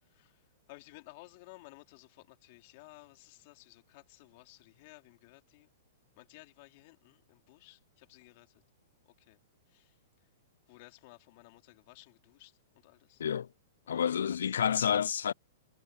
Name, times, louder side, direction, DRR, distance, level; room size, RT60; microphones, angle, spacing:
voice 1, 0.0-5.7 6.2-8.6 9.0-9.4 9.7-10.3 10.7-13.2 13.8-14.7, left 23 dB, 45° left, 3.0 m, -56 dB
voice 2, 13.9-15.3, left 8 dB, 90° left, 0.3 m, -29 dB
hypercardioid pair, 155°, 0 cm